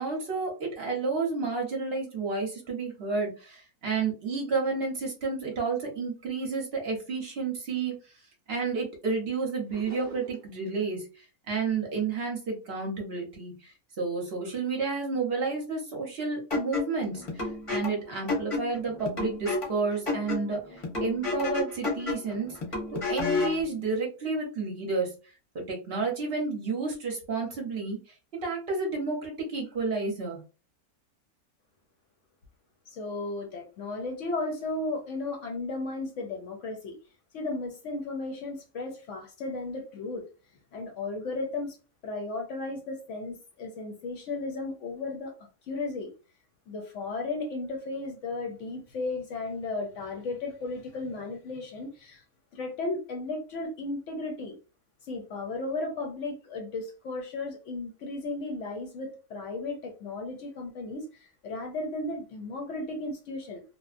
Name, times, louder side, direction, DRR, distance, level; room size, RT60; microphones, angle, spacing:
voice 1, 0.0-7.9 8.5-22.6 23.1-25.1 25.5-28.0 28.4-30.4, right 4 dB, 55° right, 0 dB, 0.8 m, -31 dB
sound 1, 9.7-10.6, right 2 dB, 25° right, 0.5 m, -44 dB
sound 2, 16.5-23.6, left 3 dB, 35° left, 0.6 m, -31 dB
voice 2, 32.9-37.0 37.3-40.3 40.7-41.8 42.0-45.3 45.7-46.1 46.7-52.2 52.5-54.6 55.0-63.6, left 2 dB, 65° left, 2 dB, 0.8 m, -35 dB
2.9 x 2.1 x 2.4 m, 0.34 s
omnidirectional pair, 1.6 m